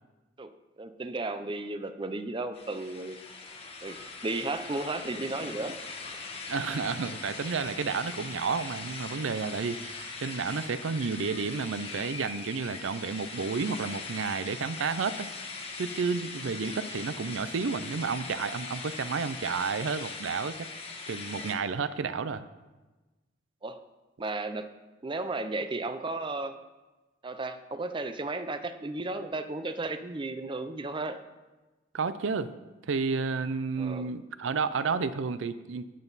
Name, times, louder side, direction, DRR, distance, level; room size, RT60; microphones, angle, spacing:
voice 1, 0.8-3.2 3.8-5.8 16.6-16.8 23.6-23.8 24.2-24.7 25.0-26.6 27.2-31.2 33.8-34.1, right 2 dB, 25° right, 10 dB, 0.5 m, -34 dB
sound 1, 2.5-21.6, left 4 dB, 30° left, 1.2 m, -41 dB
voice 2, 6.5-15.3 15.8-20.7 21.1-22.5 31.9-32.5 32.9-35.9, right 5 dB, 75° right, 13 dB, 0.5 m, -31 dB
12.5 x 9.1 x 4.0 m, 1.2 s
head